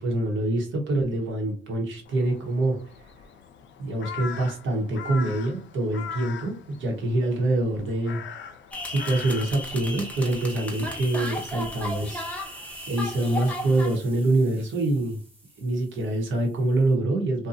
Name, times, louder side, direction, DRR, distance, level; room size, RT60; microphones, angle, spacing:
voice 1, 0.0-2.8 3.8-8.2 8.8-12.3 12.9-15.2 15.6-17.5, right 2 dB, 75° right, 2 dB, 1.0 m, -25 dB
Crow, 2.1-10.5, left 7 dB, 70° left, 0.4 m, -41 dB
sound 1, 8.7-14.0, left 1 dB, 5° left, 0.7 m, -35 dB
sound 2, 9.9-17.0, right 1 dB, 30° right, 1.0 m, -50 dB
2.7 x 2.2 x 2.6 m, 0.40 s
cardioid pair, 90°, 20 cm